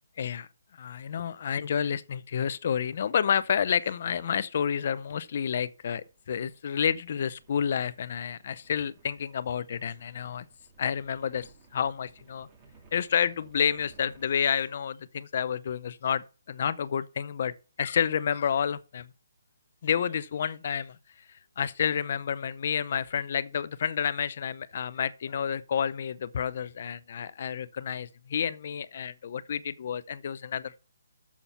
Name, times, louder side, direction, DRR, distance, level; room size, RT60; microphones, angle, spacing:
voice 1, 0.2-0.5 0.8-10.5 10.8-12.5 12.9-19.1 19.8-30.8, left 8 dB, 50° left, 0.6 m, -30 dB
sound 1, 5.2-14.8, right 3 dB, 25° right, 3.1 m, -60 dB
7.3 x 7.0 x 5.6 m
hypercardioid pair, 155°, 0 cm